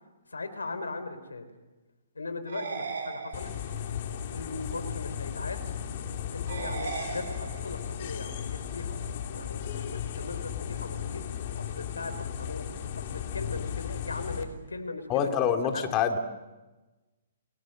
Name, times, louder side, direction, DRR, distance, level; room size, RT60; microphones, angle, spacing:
voice 1, 0.3-1.5 2.1-3.5 4.3-5.7 6.3-11.2 11.6-12.7 13.0-15.9, left 3 dB, 90° left, 11 dB, 4.0 m, -39 dB
sound 1, 2.5-3.9 6.5-7.9, right 5 dB, 60° right, 6.5 m, -37 dB
sound 2, 3.3-14.4, left 8 dB, 50° left, 3.4 m, -35 dB
voice 2, 15.1-16.2, left 8 dB, 30° left, 5 dB, 2.7 m, -26 dB
30.0 x 20.0 x 7.8 m, 1.1 s
hypercardioid pair, 130°, 0 cm